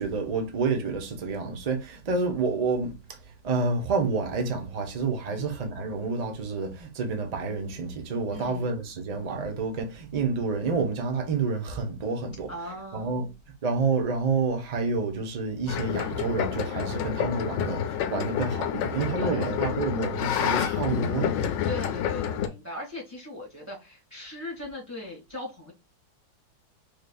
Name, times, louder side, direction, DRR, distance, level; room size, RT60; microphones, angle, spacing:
voice 1, 0.0-2.9 3.4-12.5 12.9-13.3 13.6-21.3, right 4 dB, 70° right, 0.3 m, -29 dB
voice 2, 8.3-8.7 12.5-13.2 19.1-19.6 21.6-25.7, left 1 dB, 10° right, 1.4 m, -39 dB
sound 1, 15.7-22.5, left 9 dB, 80° left, 1.3 m, -29 dB
4.7 x 3.2 x 2.3 m
omnidirectional pair, 2.0 m